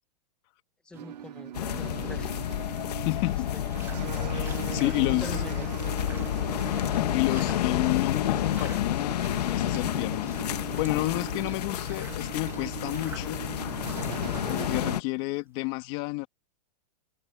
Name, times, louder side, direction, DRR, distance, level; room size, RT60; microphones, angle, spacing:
voice 1, 0.8-3.6 4.5-5.9, left 2 dB, 5° left, 1.8 m, -45 dB
sound 1, 0.9-15.7, right 6 dB, 10° right, 2.8 m, -52 dB
sound 2, 0.9-15.0, right 11 dB, 80° right, 1.2 m, -40 dB
sound 3, 1.5-15.0, left 12 dB, 70° left, 1.9 m, -30 dB
voice 2, 2.9-3.5 4.3-5.3 7.1-10.3 10.8-13.4 14.5-16.3, left 23 dB, 35° left, 2.5 m, -30 dB
supercardioid pair, 160°, 21 cm